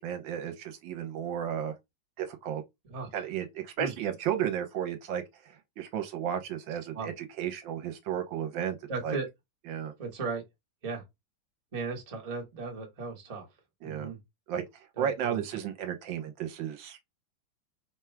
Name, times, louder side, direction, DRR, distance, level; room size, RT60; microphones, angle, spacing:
voice 1, 0.0-1.7 2.2-2.6 3.1-8.8 9.0-9.2 9.7-9.9 13.8-14.1 14.5-17.0, right 9 dB, 75° right, 1.4 m, -33 dB
voice 2, 8.9-9.3 10.0-10.4 10.8-11.0 11.7-13.5 13.8-14.2 15.0-15.4, right 4 dB, 25° right, 0.9 m, -36 dB
3.7 x 2.3 x 4.4 m
omnidirectional pair, 2.2 m